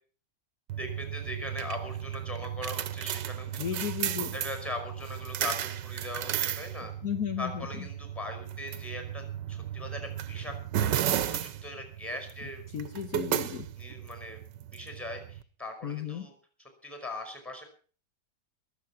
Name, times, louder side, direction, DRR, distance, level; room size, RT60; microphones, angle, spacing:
sound 1, 0.7-15.4, right 11 dB, 90° right, 1.5 m, -34 dB
voice 1, 0.8-3.8 4.3-6.9 7.4-9.2 9.5-10.5 10.8-12.6 13.4-14.4 14.7-16.3 16.6-17.6, left 1 dB, ahead, 5 dB, 5.0 m, -40 dB
voice 2, 3.6-4.3 7.0-7.7 12.7-13.7 15.8-16.3, left 9 dB, 60° left, 7 dB, 1.5 m, -34 dB
23.0 x 7.8 x 5.8 m, 0.42 s
omnidirectional pair, 1.9 m